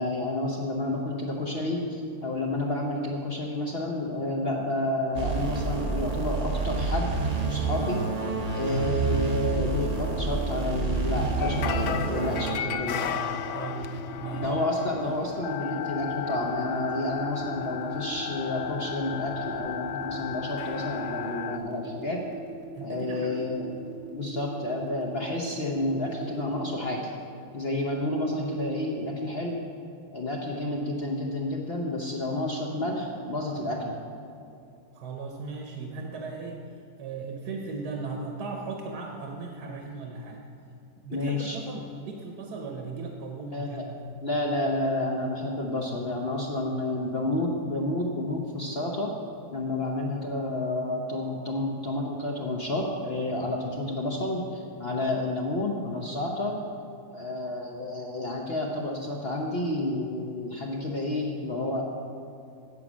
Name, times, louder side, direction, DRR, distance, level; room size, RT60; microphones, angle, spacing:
voice 1, 0.0-7.1 7.5-8.1 8.5-13.1 14.4-22.3 22.8-23.7 24.1-27.1 27.5-29.6 30.1-34.0 41.1-41.6 43.5-43.8 44.2-49.2 49.5-56.6 57.1-61.8, left 1 dB, 45° left, 0 dB, 0.9 m, -30 dB
sound 1, 5.1-12.6, right 4 dB, 35° right, 0.7 m, -28 dB
sound 2, 8.6-26.9, right 6 dB, 5° right, 1.2 m, -42 dB
sound 3, 11.4-21.6, left 8 dB, 70° left, 0.7 m, -34 dB
voice 2, 13.1-13.9 14.2-14.5 22.7-23.5 34.9-36.6 37.0-40.4 41.0-44.1, right 4 dB, 85° right, 1 dB, 1.5 m, -37 dB
9.5 x 7.7 x 6.1 m, 2.7 s
omnidirectional pair, 1.7 m